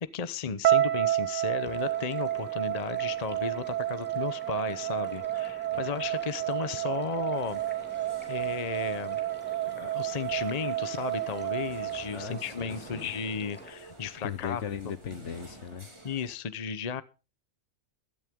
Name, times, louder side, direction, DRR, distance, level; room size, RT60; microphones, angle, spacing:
voice 1, 0.0-7.6 8.0-9.2 9.7-14.6 16.0-17.0, left 6 dB, 35° left, 15 dB, 0.8 m, -34 dB
sound 1, 0.6-12.8, right 13 dB, 70° right, 1.2 m, -31 dB
sound 2, 1.6-13.7, equal, 10° left, 2.6 m, -49 dB
sound 3, 7.3-16.4, right 1 dB, 20° right, 2.8 m, -51 dB
voice 2, 12.1-13.1 14.2-15.9, left 7 dB, 65° left, 14 dB, 1.3 m, -38 dB
16.5 x 12.5 x 3.6 m, 0.32 s
omnidirectional pair, 1.4 m